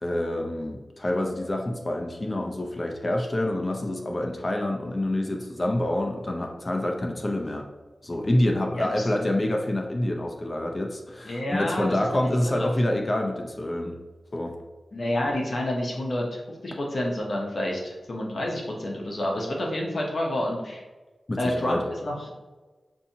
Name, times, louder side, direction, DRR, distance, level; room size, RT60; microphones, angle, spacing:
voice 1, 0.0-7.7 8.0-14.0 14.3-14.6 21.3-21.8, left 1 dB, 35° left, 2 dB, 0.6 m, -27 dB
voice 2, 8.7-9.1 11.2-12.7 14.9-20.8 21.4-22.3, left 1 dB, 65° left, -1 dB, 0.8 m, -29 dB
6.8 x 2.7 x 2.7 m, 1.2 s
wide cardioid pair, 65°, 0 cm